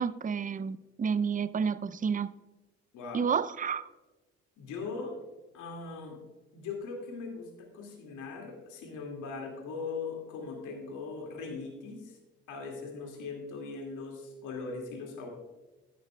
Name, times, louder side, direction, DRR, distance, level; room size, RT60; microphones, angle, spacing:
voice 1, 0.0-2.3 3.1-3.9, right 6 dB, 25° right, 0.5 m, -30 dB
voice 2, 2.9-3.3 4.6-5.2 5.5-6.2 6.5-12.2 12.5-15.3, left 4 dB, 75° left, 2.2 m, -40 dB
14.0 x 11.0 x 2.3 m
hypercardioid pair, 55°, 31 cm